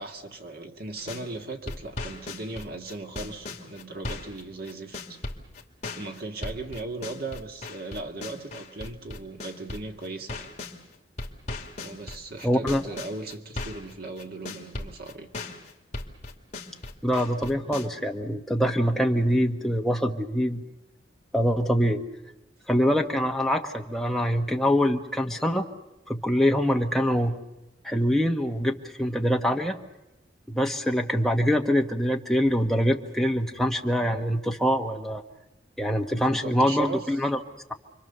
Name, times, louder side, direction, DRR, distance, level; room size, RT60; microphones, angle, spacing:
voice 1, 0.0-5.2 5.9-10.5 11.8-15.3 36.1-37.1, right 2 dB, 55° right, 2.0 m, -37 dB
sound 1, 1.0-1.3 1.7-10.8 11.2-13.9 14.2-17.9, left 2 dB, 40° left, 2.5 m, -37 dB
voice 2, 12.4-12.8 17.0-20.6 21.3-22.0 22.7-25.7 26.1-27.4 27.8-29.8 30.5-35.2 35.8-37.4, equal, ahead, 1.4 m, -24 dB
29.5 x 24.0 x 6.9 m
head